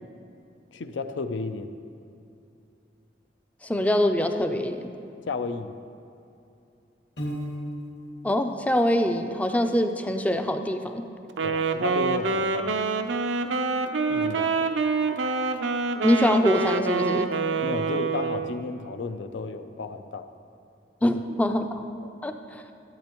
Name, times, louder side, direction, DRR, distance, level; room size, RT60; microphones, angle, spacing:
voice 1, 0.7-1.8 5.3-5.7 11.4-12.7 14.1-14.7 17.6-20.3 21.0-21.2, left 4 dB, 80° left, 10 dB, 0.5 m, -33 dB
voice 2, 3.6-4.9 8.2-11.1 16.0-17.3 21.0-21.9 22.2-22.6, left 1 dB, 10° left, 7 dB, 0.3 m, -24 dB
Piano, 7.2-8.2, equal, 65° left, 1.8 m, -33 dB
Wind instrument woodwind instrument, 11.3-18.6, right 4 dB, 90° right, 0.5 m, -26 dB
13.5 x 8.5 x 3.0 m, 2.6 s
head